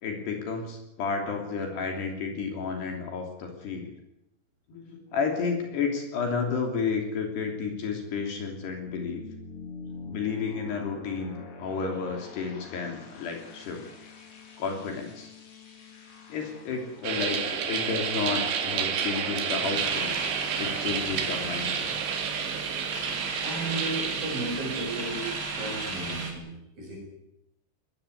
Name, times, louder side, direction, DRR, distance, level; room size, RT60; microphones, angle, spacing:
voice 1, 0.0-3.9 4.7-9.2 10.0-13.9 14.6-15.3 16.3-20.2 20.5-22.0, left 5 dB, 65° left, 3 dB, 5.0 m, -31 dB
sound 1, 8.4-20.1, left 3 dB, 35° left, 2.8 m, -47 dB
sound 2, 17.0-25.4, right 7 dB, 85° right, 4.6 m, -31 dB
sound 3, 19.7-26.3, right 4 dB, 25° right, 2.5 m, -34 dB
voice 2, 23.4-27.0, right 2 dB, 45° right, -1 dB, 8.6 m, -35 dB
20.5 x 15.0 x 9.9 m, 0.83 s
omnidirectional pair, 5.4 m